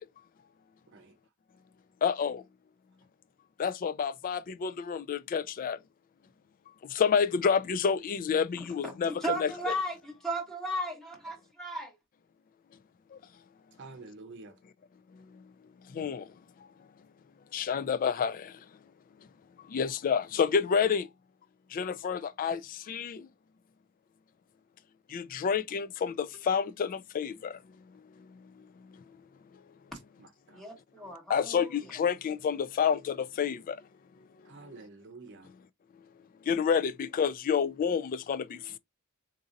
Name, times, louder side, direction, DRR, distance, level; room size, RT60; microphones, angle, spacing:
voice 1, 2.0-2.4 3.6-5.8 6.9-9.7 15.9-16.2 17.5-18.5 19.7-21.1 21.7-22.6 22.9-23.2 25.1-27.5 31.3-33.8 36.5-38.6, left 6 dB, 40° left, 0.3 m, -29 dB
voice 2, 8.6-8.9 9.2-11.9 30.5-31.8, right 1 dB, ahead, 1.1 m, -35 dB
voice 3, 13.8-14.5 30.2-30.6 34.5-35.5, right 3 dB, 55° right, 0.6 m, -48 dB
3.9 x 2.7 x 2.5 m
head